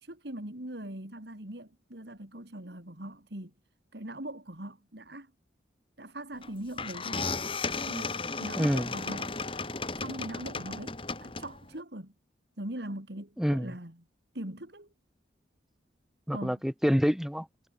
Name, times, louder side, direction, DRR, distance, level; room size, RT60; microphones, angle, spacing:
voice 1, 0.0-3.5 3.9-5.3 6.0-7.3 7.9-9.4 10.0-12.1 12.6-14.0 14.3-14.9 16.3-16.6, right 1 dB, 65° right, 3.5 m, -41 dB
sound 1, 6.4-6.5 6.8-11.7, left 4 dB, 30° left, 2.8 m, -35 dB
voice 2, 8.6-8.9 13.4-13.7 16.3-17.7, equal, ahead, 1.3 m, -27 dB
head